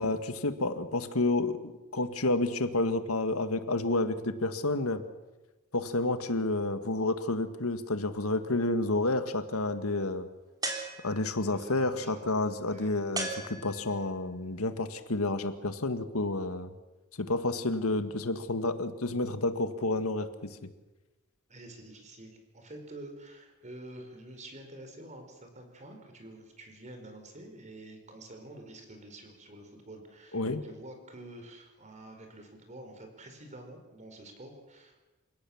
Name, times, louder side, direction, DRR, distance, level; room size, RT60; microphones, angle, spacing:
voice 1, 0.0-5.0 5.7-10.3 11.0-16.7 17.2-20.7 30.3-30.6, left 2 dB, 80° left, 9 dB, 1.8 m, -30 dB
sound 1, 10.6-11.5 13.1-14.1, right 3 dB, 20° right, 3.6 m, -36 dB
voice 2, 11.5-12.9 21.5-35.0, right 1 dB, 35° right, 5 dB, 4.7 m, -48 dB
28.5 x 17.0 x 7.2 m, 1.1 s
head